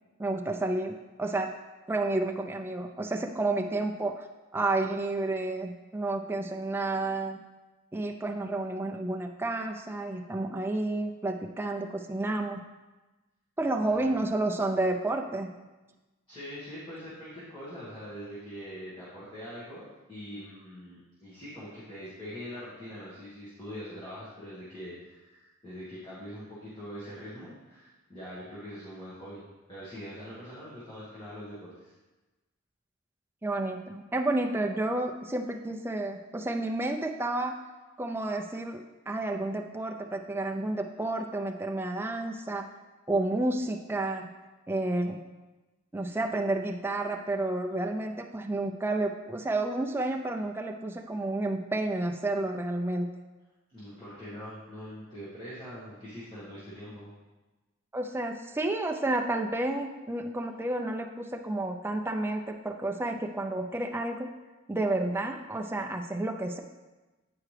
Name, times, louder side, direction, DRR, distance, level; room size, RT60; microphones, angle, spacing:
voice 1, 0.2-1.5 1.9-4.3 4.5-7.4 7.9-12.6 13.6-15.5 33.4-37.6 38.0-42.7 43.1-44.3 44.7-45.3 45.9-53.1 57.9-64.3 64.7-66.6, right 2 dB, 10° right, 2 dB, 0.4 m, -30 dB
voice 2, 13.8-14.1 16.3-31.9 53.7-57.1, equal, 20° left, -10 dB, 1.5 m, -43 dB
8.7 x 4.8 x 3.2 m, 1.2 s
head